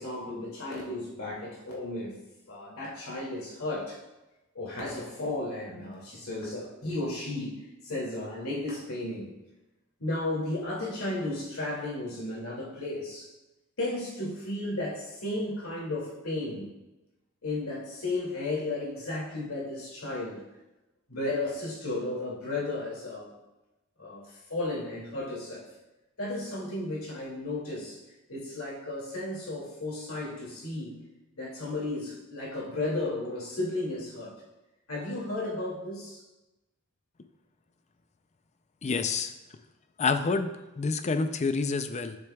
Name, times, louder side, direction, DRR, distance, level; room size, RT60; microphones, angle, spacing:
voice 1, 0.0-2.1 2.5-4.0 4.5-9.3 10.0-13.3 13.8-16.7 17.4-20.4 21.1-23.3 24.0-25.6 26.2-28.0 28.3-30.9 31.4-34.4 34.9-36.2, left 2 dB, 80° left, -3 dB, 2.4 m, -34 dB
voice 2, 38.8-39.3 40.0-42.2, left 4 dB, 30° left, 9 dB, 0.4 m, -28 dB
9.9 x 6.9 x 2.3 m, 1.0 s
head